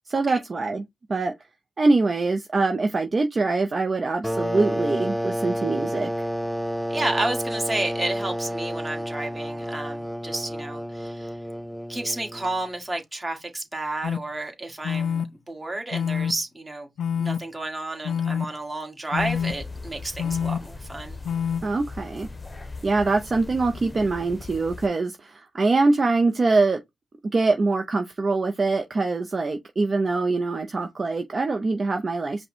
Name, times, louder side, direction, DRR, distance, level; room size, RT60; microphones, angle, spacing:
voice 1, 0.1-0.8 1.1-1.3 1.8-6.3 21.6-22.3 22.8-26.8 27.3-32.4, right 3 dB, 40° right, 0.6 m, -23 dB
sound 1, 4.2-12.6, equal, ahead, 0.4 m, -30 dB
voice 2, 6.9-11.4 11.9-15.2 15.5-16.9 17.2-21.2, right 2 dB, 20° right, 1.6 m, -31 dB
sound 2, 14.0-14.2 14.8-15.3 15.9-16.3 17.0-17.4 18.0-18.5 19.1-19.5 20.2-20.6 21.2-21.6, left 7 dB, 80° left, 0.3 m, -26 dB
sound 3, 19.2-24.9, left 3 dB, 25° left, 0.9 m, -40 dB
5.3 x 2.2 x 4.4 m
cardioid pair, 70°, 0 cm